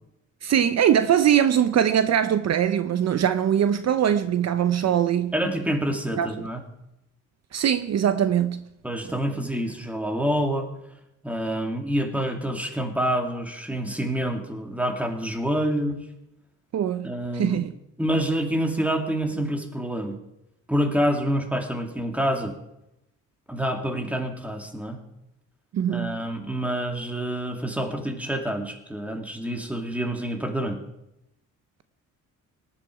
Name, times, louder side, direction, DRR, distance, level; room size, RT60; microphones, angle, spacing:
voice 1, 0.4-5.3 6.1-6.5 7.5-8.6 16.7-17.7 25.7-26.2, right 9 dB, 55° right, 0.7 m, -22 dB
voice 2, 5.3-6.6 8.8-10.7 11.2-16.0 17.0-17.6 18.0-20.2 20.7-22.5 23.5-25.0 25.9-30.8, equal, 5° right, 2.3 m, -27 dB
18.5 x 11.0 x 4.8 m
cardioid pair, 105°, 33 cm